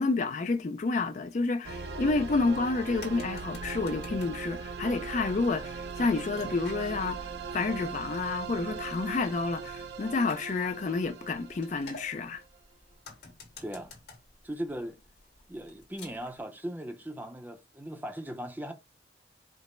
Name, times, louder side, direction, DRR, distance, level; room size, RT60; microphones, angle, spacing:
voice 1, 0.0-12.4, left 3 dB, 40° left, 0.4 m, -29 dB
sound 1, 1.6-12.3, right 5 dB, 70° right, 0.6 m, -39 dB
sound 2, 2.6-16.4, left 3 dB, 65° left, 1.7 m, -52 dB
voice 2, 14.4-15.0 15.5-18.7, equal, 10° right, 0.5 m, -38 dB
5.1 x 2.0 x 4.2 m
head